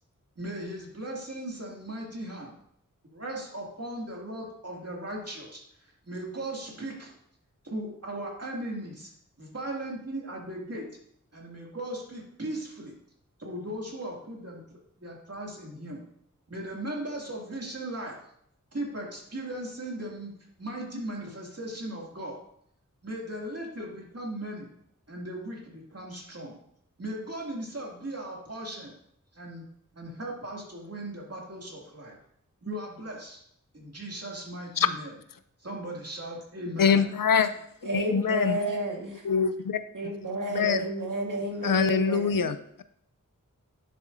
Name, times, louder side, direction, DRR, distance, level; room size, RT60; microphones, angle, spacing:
voice 1, 0.4-2.6 3.0-7.1 7.6-9.1 9.4-10.9 11.3-12.9 13.4-14.6 15.0-16.0 16.5-18.2 18.7-20.3 20.6-22.4 23.0-24.7 25.1-26.6 27.0-28.9 29.3-29.7 29.9-32.1 32.6-33.4 33.7-35.1 35.6-37.1, right 1 dB, 50° right, -2 dB, 2.3 m, -37 dB
voice 2, 36.8-37.5 37.9-38.6 39.2-39.5 40.6-40.8 41.6-42.8, left 6 dB, 85° left, 12 dB, 0.5 m, -24 dB
voice 3, 37.8-39.3 40.0-42.5, right 1 dB, 70° right, 0 dB, 1.7 m, -31 dB
10.0 x 7.0 x 2.6 m, 0.68 s
wide cardioid pair, 45°, 33 cm